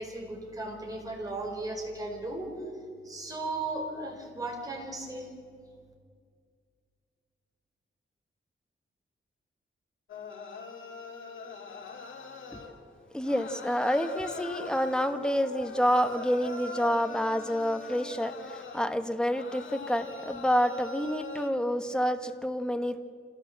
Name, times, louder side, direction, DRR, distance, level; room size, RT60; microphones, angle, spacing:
voice 1, 0.0-2.5 3.0-5.3, right 2 dB, 15° right, 0 dB, 4.8 m, -36 dB
sound 1, 10.1-12.9 13.2-21.5, left 4 dB, 70° left, 2.2 m, -43 dB
voice 2, 13.1-23.0, equal, 5° left, 7 dB, 1.2 m, -28 dB
27.0 x 16.0 x 8.0 m, 2.2 s
wide cardioid pair, 145°, 21 cm